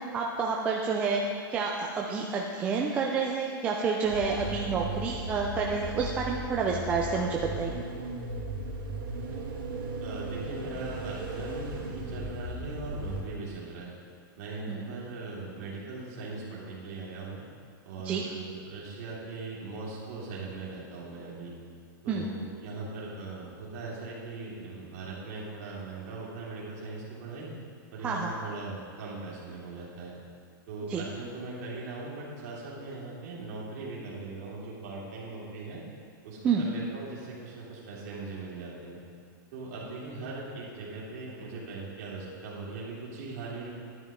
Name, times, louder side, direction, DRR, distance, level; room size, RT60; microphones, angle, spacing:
voice 1, 0.1-1.2 1.5-7.9 14.7-14.8 18.0-18.2 22.1-22.3 28.0-28.3 30.9-31.0 36.4-36.6, right 5 dB, 10° right, -1 dB, 0.4 m, -29 dB
sound 1, 4.0-13.2, right 2 dB, 70° right, 2.4 m, -36 dB
voice 2, 10.0-13.9 14.4-17.4 17.8-21.5 22.0-27.5 27.9-30.1 30.7-35.8 36.2-39.0 39.5-43.7, right 3 dB, 40° right, -5 dB, 2.8 m, -40 dB
11.0 x 10.5 x 3.6 m, 2.4 s
supercardioid pair, 170°, 12 cm